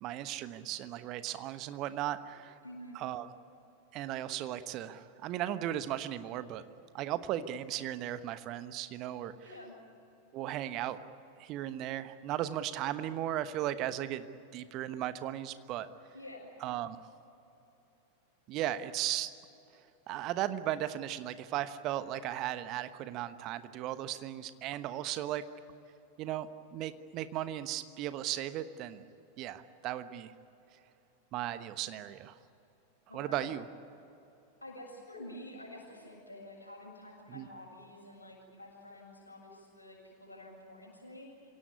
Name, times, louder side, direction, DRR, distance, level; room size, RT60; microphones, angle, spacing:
voice 1, 0.0-2.6 2.9-3.3 3.9-6.6 6.9-9.5 10.3-11.0 11.4-14.3 14.5-15.9 16.6-17.0 18.5-19.3 20.1-25.4 26.2-29.0 29.4-30.3 31.3-32.4 33.1-33.7 37.3-37.5, right 12 dB, 40° right, 12 dB, 1.2 m, -36 dB
voice 2, 2.6-3.0 9.4-9.7 16.1-16.5 33.1-33.5 34.6-41.3, left 1 dB, 80° left, -1 dB, 7.4 m, -49 dB
26.0 x 17.5 x 9.8 m, 2.9 s
figure-of-eight pair, 90°, 0 cm